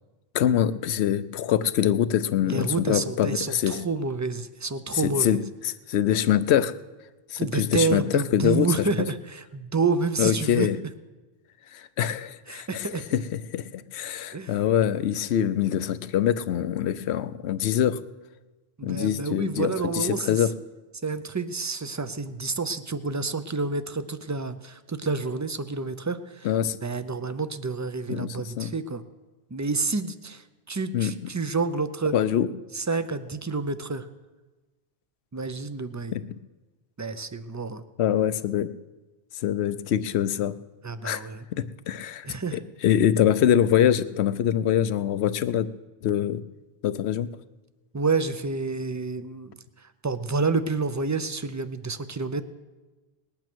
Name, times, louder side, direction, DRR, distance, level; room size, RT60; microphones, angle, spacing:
voice 1, 0.3-3.8 4.9-5.4 5.6-6.7 7.3-8.9 10.2-10.8 11.7-18.0 18.8-20.5 26.4-26.8 28.1-28.7 30.9-31.3 32.1-32.5 36.1-36.4 38.0-38.7 39.3-40.5 41.0-41.2 41.5-45.7 46.0-46.4 46.8-47.4, left 10 dB, 75° left, 14 dB, 0.9 m, -24 dB
voice 2, 2.5-5.4 7.4-10.7 12.5-13.1 14.3-14.5 18.8-20.5 21.0-26.5 26.8-29.0 29.5-32.1 32.7-34.1 35.3-36.2 37.0-37.8 40.8-41.5 42.2-42.6 47.9-52.4, right 4 dB, 25° right, 11 dB, 0.3 m, -29 dB
19.5 x 8.8 x 6.1 m, 1.2 s
omnidirectional pair, 1.1 m